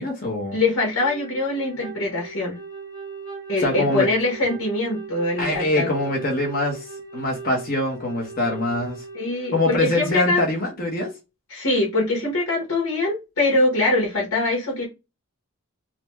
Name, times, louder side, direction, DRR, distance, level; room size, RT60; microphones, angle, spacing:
voice 1, 0.0-0.6 3.6-4.1 5.4-6.9 7.1-9.0 9.5-11.1, left 2 dB, 40° left, 1.1 m, -24 dB
voice 2, 0.5-2.6 3.5-5.9 9.1-10.4 11.5-14.9, left 2 dB, 80° left, 1.4 m, -23 dB
Wind instrument woodwind instrument, 1.0-9.6, right 4 dB, 15° right, 0.9 m, -38 dB
4.0 x 2.3 x 3.0 m
head